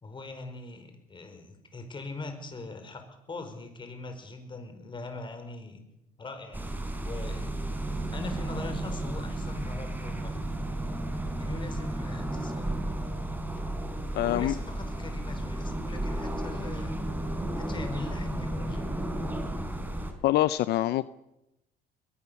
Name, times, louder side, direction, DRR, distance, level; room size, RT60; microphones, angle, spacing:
voice 1, 0.0-5.8 6.2-7.6 8.1-10.5 11.4-12.8 14.2-17.0 17.6-19.0, left 3 dB, 30° left, 7 dB, 5.1 m, -41 dB
sound 1, 6.5-20.1, right 1 dB, 10° right, 4.1 m, -33 dB
voice 2, 14.1-14.5 20.2-21.1, left 14 dB, 75° left, 15 dB, 0.7 m, -25 dB
22.0 x 19.5 x 7.1 m, 0.89 s
cardioid pair, 110°, 17 cm